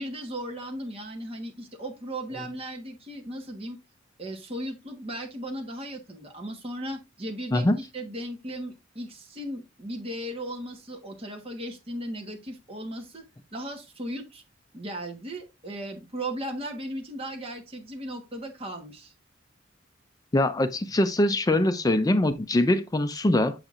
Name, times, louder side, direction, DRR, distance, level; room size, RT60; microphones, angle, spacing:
voice 1, 0.0-3.8 4.2-13.2 13.5-14.4 14.7-19.1, right 1 dB, 30° right, 1.3 m, -36 dB
voice 2, 20.3-23.6, left 1 dB, 20° left, 0.4 m, -23 dB
7.9 x 5.8 x 2.5 m
head